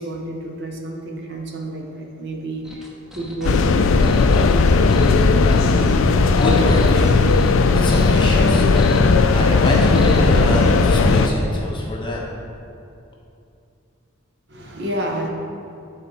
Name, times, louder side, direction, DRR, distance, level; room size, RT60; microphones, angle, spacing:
voice 1, 0.0-3.9 5.0-5.3 14.5-15.3, right 1 dB, 50° right, 1 dB, 0.9 m, -30 dB
sound 1, 2.6-10.9, equal, ahead, 0.6 m, -36 dB
sound 2, 3.4-11.3, left 3 dB, 60° left, 0.4 m, -16 dB
voice 2, 6.4-7.2 7.7-9.0 9.3-12.2, left 1 dB, 20° left, -3 dB, 1.0 m, -25 dB
11.5 x 4.2 x 4.2 m, 2.6 s
head